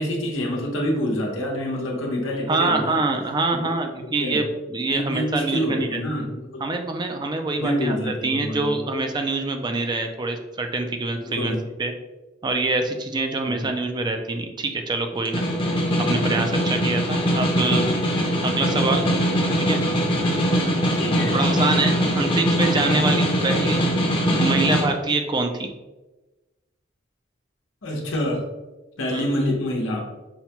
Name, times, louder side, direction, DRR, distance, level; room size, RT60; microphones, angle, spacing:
voice 1, 0.0-3.0 3.5-3.6 4.2-4.4 4.9-6.6 7.5-8.8 11.2-11.6 13.4-13.7 21.0-21.4 27.8-28.5 29.0-30.1, equal, 85° left, -2 dB, 0.9 m, -26 dB
voice 2, 2.5-6.0 6.6-11.9 12.4-15.4 16.0-17.8 18.4-19.1 19.5-19.8 21.3-23.8 24.3-25.7 29.1-29.3, right 3 dB, 25° right, 5 dB, 0.3 m, -25 dB
Snare drum, 15.1-24.9, equal, 25° left, 0.7 m, -22 dB
5.6 x 2.2 x 2.8 m, 1.1 s
head